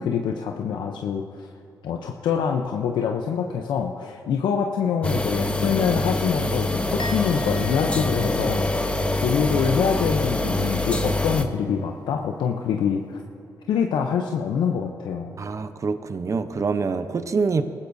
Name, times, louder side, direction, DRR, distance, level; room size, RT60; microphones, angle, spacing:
voice 1, 0.0-1.5 1.8-8.7 9.1-13.2 13.7-15.3, left 7 dB, 85° left, 3 dB, 0.6 m, -25 dB
sound 1, 5.0-11.4, left 2 dB, 15° left, 1.1 m, -25 dB
Musical instrument, 7.0-10.4 10.6-11.1, left 4 dB, 70° left, 1.2 m, -40 dB
voice 2, 15.4-17.6, right 4 dB, 45° right, 10 dB, 0.7 m, -25 dB
21.0 x 14.0 x 2.7 m, 2.7 s
cardioid pair, 65°, 8 cm